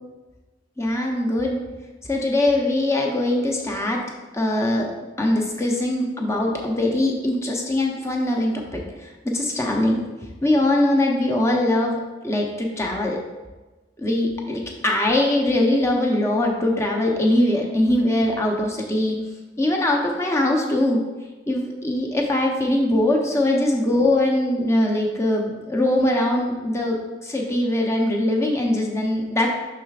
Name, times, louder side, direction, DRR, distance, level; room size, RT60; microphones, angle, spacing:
voice 1, 0.8-1.6 2.1-4.0 4.3-4.9 5.2-8.8 9.3-10.0 10.4-11.9 12.2-13.2 14.0-19.2 19.6-21.0 21.5-27.0 27.2-29.5, left 1 dB, 15° left, 0 dB, 0.7 m, -21 dB
6.8 x 5.8 x 2.4 m, 1.2 s
head